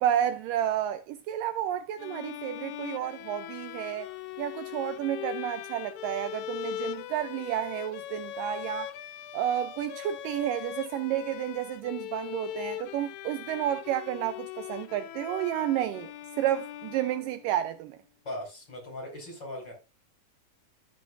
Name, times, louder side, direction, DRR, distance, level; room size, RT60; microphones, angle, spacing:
voice 1, 0.0-4.1 4.4-8.9 9.3-16.1 16.4-18.0, right 11 dB, 80° right, 2.2 m, -31 dB
sound 1, 2.0-17.6, left 12 dB, 75° left, 2.4 m, -40 dB
voice 2, 18.2-19.7, left 1 dB, 30° left, 6.0 m, -39 dB
14.5 x 6.5 x 2.5 m
omnidirectional pair, 4.2 m